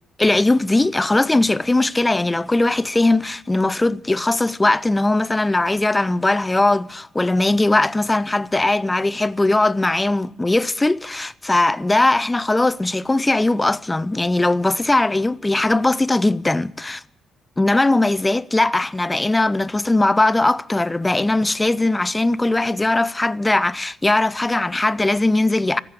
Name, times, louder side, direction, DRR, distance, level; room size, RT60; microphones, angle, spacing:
voice 1, 0.2-17.0 17.6-25.8, left 2 dB, 15° left, 0.5 m, -19 dB
13.5 x 9.9 x 9.1 m
cardioid pair, 90°, 0 cm